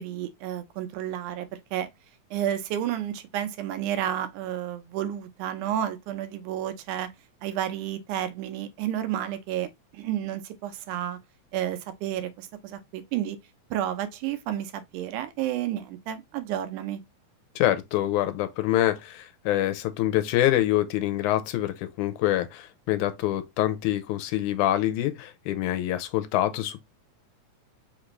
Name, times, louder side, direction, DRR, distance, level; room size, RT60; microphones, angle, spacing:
voice 1, 0.0-1.9 2.3-7.1 7.4-9.7 9.9-11.2 11.5-13.4 13.7-17.0, right 11 dB, 85° right, 2.1 m, -31 dB
voice 2, 17.6-26.8, left 14 dB, 85° left, 2.0 m, -25 dB
5.1 x 2.5 x 3.0 m
omnidirectional pair, 3.5 m